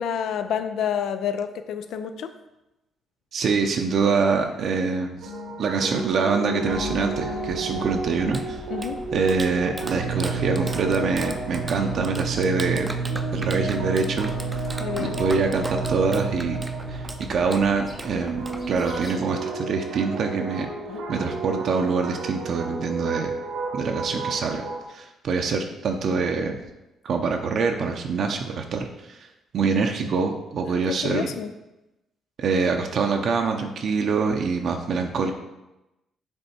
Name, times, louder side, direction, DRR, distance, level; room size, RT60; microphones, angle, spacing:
voice 1, 0.0-2.3 8.7-9.0 14.8-15.2 20.9-21.0 30.7-31.5, left 8 dB, 75° left, 9 dB, 0.5 m, -29 dB
voice 2, 3.3-5.2 5.6-8.6 9.1-12.9 13.3-14.7 15.0-16.6 16.9-20.7 21.1-23.3 23.7-26.6 27.0-29.2 29.5-31.3 32.4-35.3, right 4 dB, 60° right, 3 dB, 0.6 m, -25 dB
sound 1, 5.2-24.8, right 3 dB, 90° right, 1.3 m, -31 dB
sound 2, 6.6-19.1, left 2 dB, 35° left, 1.0 m, -42 dB
Clapping, 8.0-19.2, right 2 dB, 15° right, 0.5 m, -39 dB
6.8 x 3.5 x 4.3 m, 0.96 s
cardioid pair, 90°, 0 cm